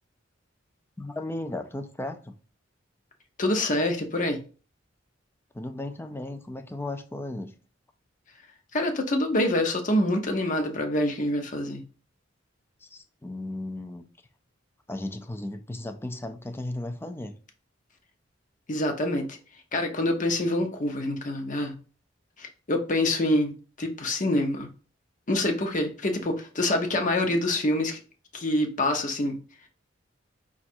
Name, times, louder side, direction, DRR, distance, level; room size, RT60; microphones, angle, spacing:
voice 1, 1.0-2.3 5.5-7.5 12.8-14.1 14.9-17.3, left 2 dB, 10° left, 0.4 m, -35 dB
voice 2, 3.4-4.4 8.7-11.8 18.7-19.4 19.7-21.8 22.4-24.7 25.3-28.0 28.3-29.4, left 1 dB, 40° left, 0.8 m, -26 dB
5.1 x 2.4 x 4.3 m
head